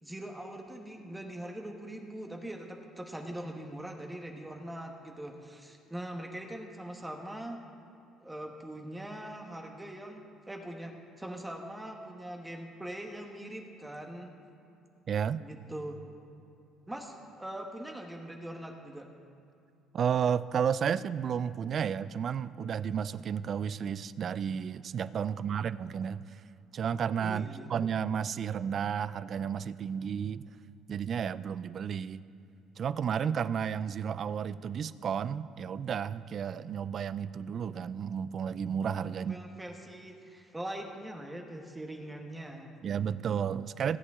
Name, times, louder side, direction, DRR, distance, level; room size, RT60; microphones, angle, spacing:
voice 1, 0.0-7.6 8.2-14.3 15.4-16.0 16.9-19.1 25.2-25.6 27.2-27.7 39.0-42.8, right 1 dB, 10° right, 2 dB, 1.2 m, -42 dB
voice 2, 15.1-15.4 19.9-26.2 26.7-30.5 30.9-32.2 32.8-39.4 42.8-44.0, right 7 dB, 45° right, 17 dB, 0.3 m, -32 dB
18.5 x 8.3 x 3.6 m, 2.7 s
cardioid pair, 105°, 0 cm